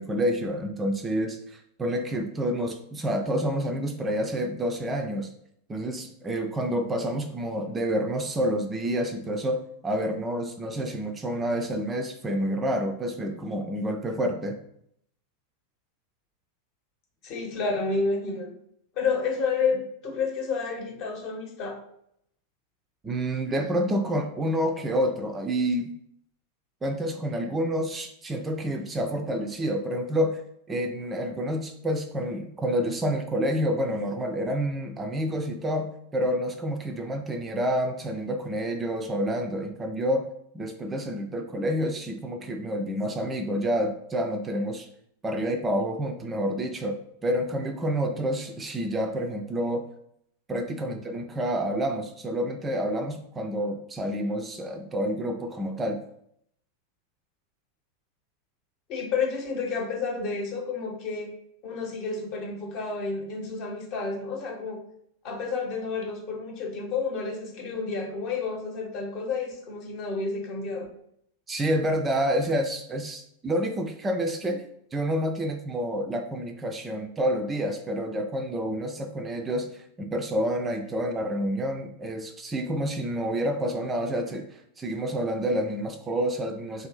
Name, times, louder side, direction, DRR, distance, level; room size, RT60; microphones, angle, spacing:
voice 1, 0.0-5.3 5.7-14.6 23.0-25.9 26.8-30.4 30.7-40.3 40.5-44.9 45.2-49.9 50.5-56.0 71.5-86.9, equal, 15° right, 5 dB, 0.3 m, -28 dB
voice 2, 17.2-18.5 18.9-21.8 50.8-50.9 58.9-61.3 61.6-64.8 65.2-70.9, left 4 dB, 40° left, 1 dB, 0.9 m, -30 dB
2.6 x 2.6 x 3.9 m, 0.71 s
figure-of-eight pair, 90°, 0 cm